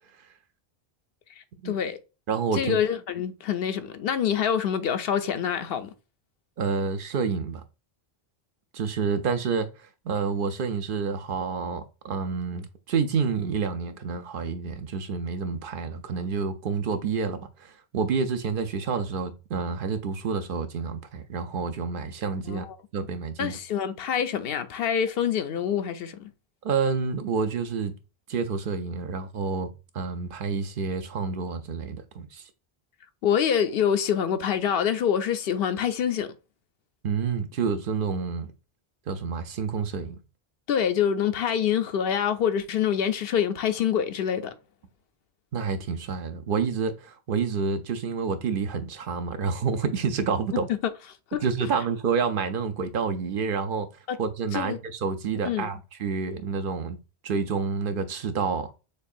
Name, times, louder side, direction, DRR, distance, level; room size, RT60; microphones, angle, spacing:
voice 1, 1.6-2.0 2.5-5.9 22.4-22.8 23.4-26.2 33.2-36.3 40.7-44.5 51.3-51.4 54.1-54.2 54.5-54.8 55.4-55.7, left 8 dB, 70° left, 0.8 m, -26 dB
voice 2, 2.3-2.8 6.6-7.6 8.7-22.7 22.9-23.5 26.6-27.9 28.3-32.4 37.0-38.5 39.1-40.2 45.5-50.7 51.4-53.9 54.2-57.0 57.2-58.7, right 5 dB, 65° right, 0.7 m, -28 dB
6.4 x 2.4 x 2.5 m
omnidirectional pair, 1.0 m